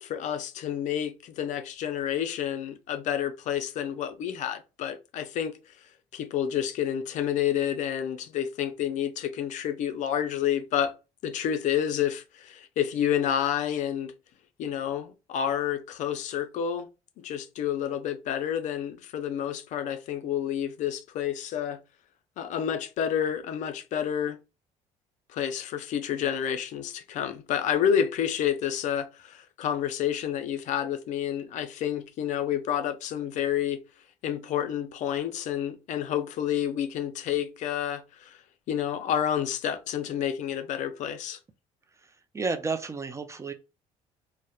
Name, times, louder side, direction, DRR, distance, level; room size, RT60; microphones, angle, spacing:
voice 1, 0.0-5.5 6.1-10.9 11.2-14.1 14.6-16.9 17.2-21.8 22.4-24.4 25.3-33.8 34.2-38.4 38.7-41.4, left 9 dB, 60° left, 0.4 m, -29 dB
voice 2, 42.0-43.5, right 4 dB, 20° right, 0.3 m, -32 dB
2.8 x 2.0 x 2.3 m
supercardioid pair, 85°, 14 cm